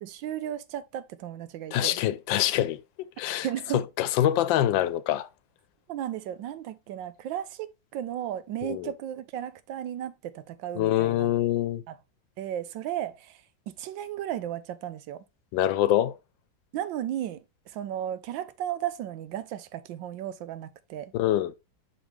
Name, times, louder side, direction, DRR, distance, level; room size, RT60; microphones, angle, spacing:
voice 1, 0.0-2.0 3.4-3.8 5.9-11.3 11.9-12.0 12.4-15.2 16.7-21.1, right 11 dB, 90° right, 1.4 m, -35 dB
voice 2, 1.7-2.8 3.2-3.5 3.7-5.3 8.6-8.9 10.8-11.8 15.5-16.2 21.1-21.5, left 12 dB, 90° left, 1.4 m, -25 dB
6.2 x 5.4 x 3.2 m
omnidirectional pair, 2.0 m